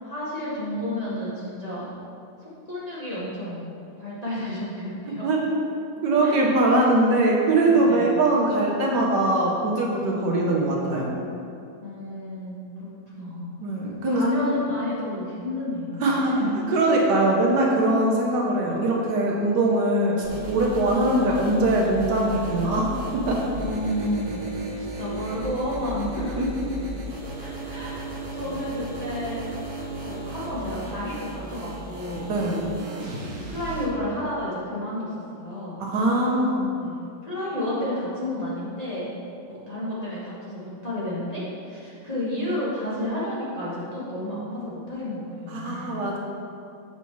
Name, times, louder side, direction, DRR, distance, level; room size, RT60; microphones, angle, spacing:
voice 1, 0.0-1.9 2.4-3.7 4.0-5.3 6.2-6.5 7.8-8.1 11.8-13.6 14.1-16.8 23.5-24.4 24.8-26.5 27.4-29.4 30.0-32.3 33.5-35.8 36.8-39.1 39.5-46.0, left 1 dB, 25° left, -9 dB, 1.1 m, -31 dB
voice 2, 5.1-5.6 6.0-11.2 13.6-14.2 16.0-16.3 16.7-23.4 26.2-26.5 32.3-32.7 35.8-36.7 45.5-46.2, right 2 dB, 70° right, -2 dB, 1.4 m, -22 dB
sound 1, 20.2-33.8, right 2 dB, 50° right, 1.2 m, -35 dB
7.1 x 4.3 x 4.6 m, 2.6 s
omnidirectional pair, 2.0 m